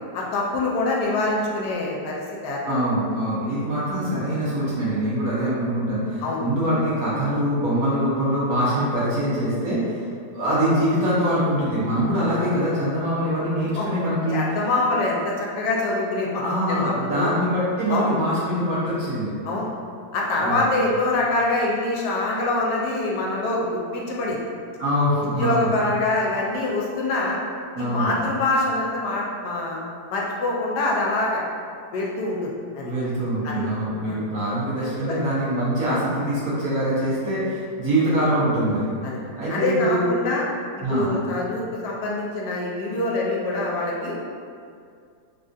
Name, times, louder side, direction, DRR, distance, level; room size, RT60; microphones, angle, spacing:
voice 1, 0.1-2.8 6.2-6.4 13.7-13.9 14.3-17.4 17.9-18.2 19.4-19.7 20.1-24.4 25.2-27.4 27.8-29.8 30.1-31.4 31.9-32.9 33.4-33.7 34.0-34.2 39.0-39.2 39.5-40.4 40.9-44.1, left 2 dB, 75° left, -3 dB, 1.1 m, -25 dB
voice 2, 2.7-10.1 10.3-14.4 16.4-19.3 20.4-20.6 24.8-25.7 27.7-28.2 32.8-38.9 39.2-40.1 40.8-41.1, equal, 60° right, -9 dB, 1.2 m, -24 dB
3.4 x 2.4 x 2.5 m, 2.3 s
omnidirectional pair, 1.8 m